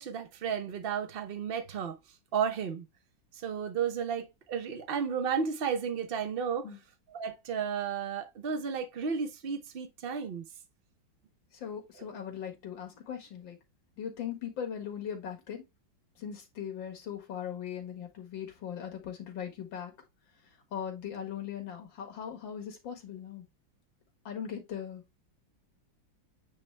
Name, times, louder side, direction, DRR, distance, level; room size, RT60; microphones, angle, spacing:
voice 1, 0.0-2.0 2.3-2.9 3.3-6.7 7.1-10.4, right 6 dB, 70° right, 0.5 m, -33 dB
voice 2, 11.5-13.6 14.0-15.6 16.2-19.9 20.7-23.4 24.3-25.0, left 8 dB, 80° left, 2.3 m, -39 dB
8.9 x 3.3 x 3.2 m
omnidirectional pair, 2.0 m